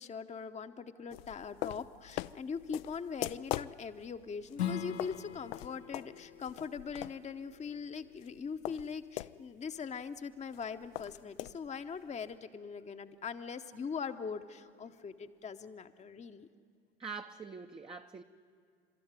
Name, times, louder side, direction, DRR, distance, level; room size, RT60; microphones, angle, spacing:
voice 1, 0.0-16.5, left 6 dB, 20° left, 8 dB, 0.9 m, -41 dB
sound 1, 1.1-9.4 9.7-9.8 10.0-12.4, left 17 dB, 65° left, 0.5 m, -42 dB
Strum, 4.5-9.7, left 9 dB, 80° left, 0.9 m, -43 dB
voice 2, 17.0-18.2, right 5 dB, 15° right, 4 dB, 0.7 m, -44 dB
29.5 x 13.0 x 9.7 m, 2.4 s
figure-of-eight pair, 65°, 32 cm